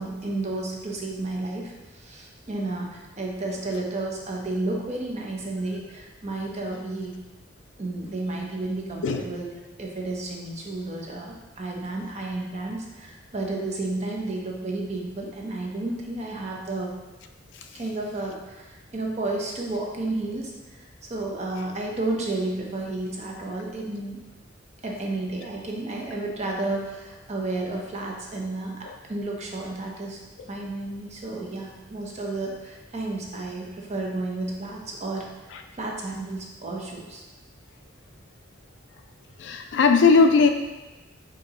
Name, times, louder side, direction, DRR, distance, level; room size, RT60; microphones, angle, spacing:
voice 1, 0.0-7.2 7.8-9.5 9.8-16.9 17.7-24.2 24.8-30.2 30.5-37.2, right 2 dB, 35° right, -1 dB, 0.7 m, -32 dB
voice 2, 39.4-40.5, left 4 dB, 70° left, 6 dB, 0.4 m, -18 dB
4.6 x 2.9 x 3.6 m, 1.1 s
head